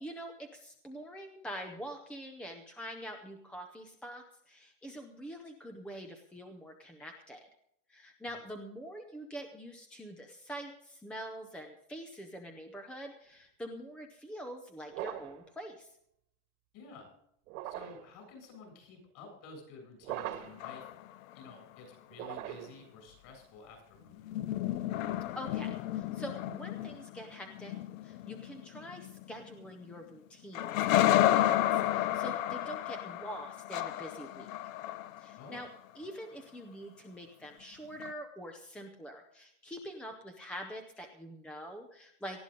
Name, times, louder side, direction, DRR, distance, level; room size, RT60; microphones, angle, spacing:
voice 1, 0.0-7.4 7.9-15.9 25.4-27.7 28.0-34.5 35.2-35.7 35.9-42.4, equal, 5° left, 4 dB, 0.6 m, -45 dB
sound 1, 14.9-15.4 17.5-18.1 20.0-20.7 22.1-22.9, right 13 dB, 75° right, 1.8 m, -40 dB
voice 2, 16.7-17.1 17.6-20.9 21.3-24.2 35.3-35.6, left 3 dB, 45° left, 2 dB, 7.7 m, -51 dB
sound 2, 20.1-21.4 24.1-30.0 30.5-35.6 38.0-38.1, left 13 dB, 60° left, 0.8 m, -32 dB
19.0 x 13.5 x 3.8 m, 0.73 s
supercardioid pair, 175°, 45 cm